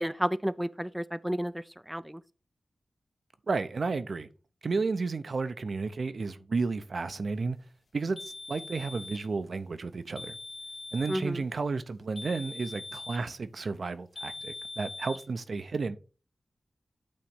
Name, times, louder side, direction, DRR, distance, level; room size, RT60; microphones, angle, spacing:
voice 1, 0.0-1.5 1.9-2.2 11.1-11.4, equal, 5° right, 0.4 m, -31 dB
voice 2, 3.5-4.3 4.6-7.6 7.9-10.4 10.9-16.0, right 4 dB, 70° right, 0.6 m, -32 dB
sound 1, 8.2-9.3 10.2-11.3 12.2-13.3 14.2-15.3, left 3 dB, 65° left, 0.8 m, -42 dB
8.6 x 3.1 x 5.3 m
wide cardioid pair, 75°, 0 cm